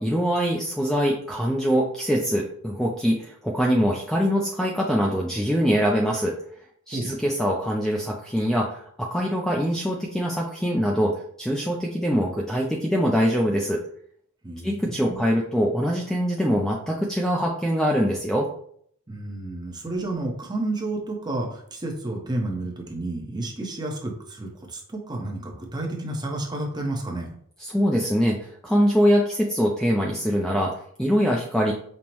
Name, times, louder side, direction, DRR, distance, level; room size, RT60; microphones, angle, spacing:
voice 1, 0.0-6.4 6.9-13.8 14.6-18.5 27.6-31.7, equal, ahead, -2 dB, 0.3 m, -23 dB
voice 2, 14.4-15.2 19.1-27.3, right 2 dB, 20° right, 0 dB, 0.7 m, -31 dB
5.3 x 2.0 x 2.9 m, 0.63 s
head